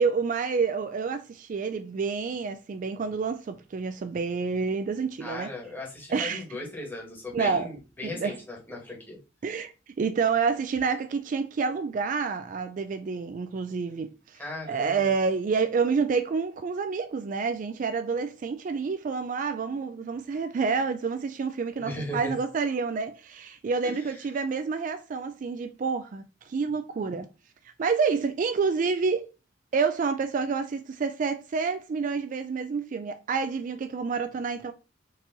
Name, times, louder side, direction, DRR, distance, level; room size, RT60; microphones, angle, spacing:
voice 1, 0.0-5.5 6.1-6.4 7.3-7.7 8.0-8.4 9.4-9.7 10.0-14.4 14.7-27.3 27.8-29.3 29.7-34.7, right 5 dB, 40° right, 0.3 m, -28 dB
voice 2, 5.2-9.2 14.3-15.1 21.8-22.4 23.8-24.2, left 1 dB, 10° left, 1.5 m, -37 dB
4.7 x 2.8 x 3.8 m
head